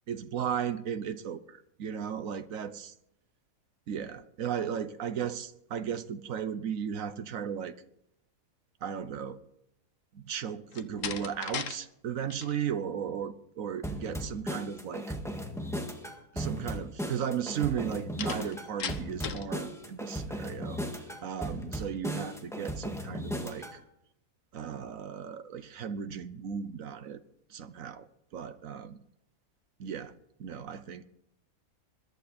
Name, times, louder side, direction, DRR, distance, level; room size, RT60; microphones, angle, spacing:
voice 1, 0.1-2.9 3.9-7.8 8.8-9.4 10.1-15.2 16.3-23.8 24.5-27.2 27.5-28.1 28.3-29.0 29.8-30.1 30.4-31.0, right 8 dB, 70° right, 1.3 m, -35 dB
Slam, 10.7-11.8 12.1-12.6 18.2-19.5, left 7 dB, 60° left, 1.3 m, -37 dB
sound 1, 13.8-23.8, equal, ahead, 1.7 m, -36 dB
21.5 x 11.5 x 4.3 m
omnidirectional pair, 1.5 m